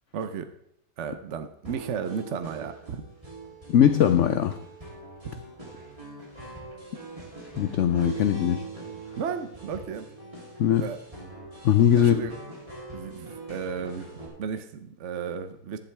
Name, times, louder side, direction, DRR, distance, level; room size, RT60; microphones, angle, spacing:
voice 1, 0.1-0.5 1.0-3.0 5.2-5.4 9.2-10.1 10.8-11.0 12.0-12.3 12.9-14.1 14.4-15.8, right 6 dB, 55° right, 9 dB, 0.9 m, -34 dB
sound 1, 1.6-14.3, right 3 dB, 20° right, 3.2 m, -42 dB
voice 2, 3.7-4.6 7.6-8.6 10.6-10.9 11.6-12.3, left 9 dB, 70° left, 10 dB, 0.7 m, -20 dB
11.5 x 11.0 x 3.4 m, 0.73 s
omnidirectional pair, 1.8 m